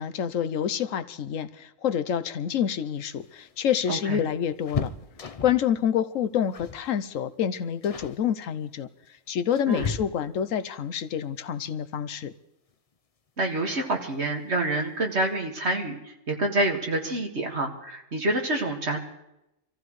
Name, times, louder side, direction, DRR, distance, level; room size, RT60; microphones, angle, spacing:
voice 1, 0.0-4.9 5.4-8.9 9.3-12.3, left 9 dB, 80° left, 13 dB, 1.1 m, -27 dB
sound 1, 3.0-5.7 6.5-6.9 7.2-7.4 7.8-8.2 9.0-10.5 12.3-12.4 12.7-12.8 14.0-14.4 14.8-14.9 15.2-15.4, left 5 dB, 35° left, 0.6 m, -36 dB
voice 2, 3.9-4.2 9.7-9.9 13.4-16.0 16.3-19.0, right 2 dB, 55° right, 2 dB, 2.2 m, -27 dB
26.0 x 14.5 x 3.2 m, 0.89 s
omnidirectional pair, 1.3 m